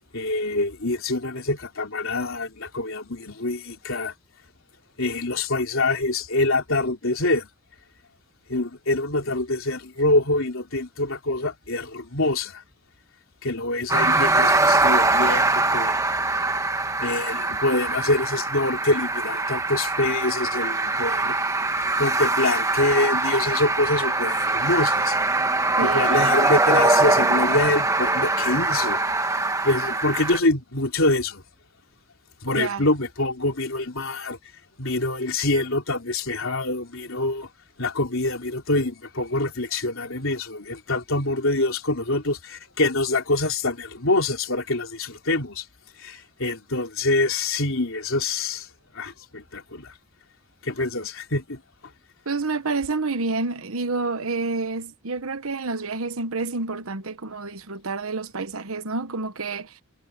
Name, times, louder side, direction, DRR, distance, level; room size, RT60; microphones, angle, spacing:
voice 1, 0.1-4.1 5.0-7.5 8.5-12.6 13.4-16.0 17.0-21.4 21.7-25.2 25.8-29.4 29.6-31.4 32.4-34.4 34.8-37.5 37.8-45.7 46.0-48.7 48.9-49.9 50.6-51.6, left 2 dB, 65° left, 3.9 m, -25 dB
sound 1, 13.9-30.4, right 2 dB, 15° right, 1.5 m, -22 dB
voice 2, 25.8-26.1 32.5-32.8 52.3-59.7, right 3 dB, 75° right, 1.3 m, -28 dB
head